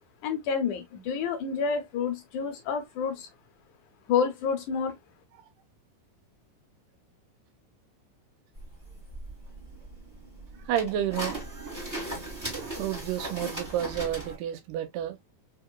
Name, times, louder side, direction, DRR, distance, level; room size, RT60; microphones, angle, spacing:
voice 1, 0.2-3.3 4.1-5.0, left 6 dB, 70° left, 2.3 m, -29 dB
sound 1, 8.6-14.4, right 1 dB, 10° right, 1.0 m, -38 dB
voice 2, 10.7-12.0 12.5-15.2, right 10 dB, 80° right, 2.3 m, -31 dB
5.2 x 2.9 x 2.2 m
omnidirectional pair, 3.9 m